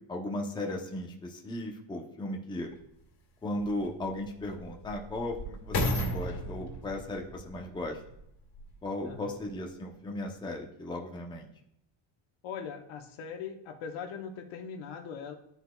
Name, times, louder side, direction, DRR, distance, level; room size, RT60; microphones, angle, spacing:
voice 1, 0.1-2.7 3.4-8.0 8.8-11.5, left 1 dB, 10° left, 1 dB, 0.7 m, -36 dB
sound 1, 2.7-2.8 3.5-8.8 9.5-9.6, left 1 dB, 55° left, 1.9 m, -35 dB
voice 2, 12.4-15.3, left 6 dB, 75° left, 4 dB, 1.1 m, -40 dB
11.5 x 4.1 x 2.3 m, 0.77 s
cardioid pair, 135°, 47 cm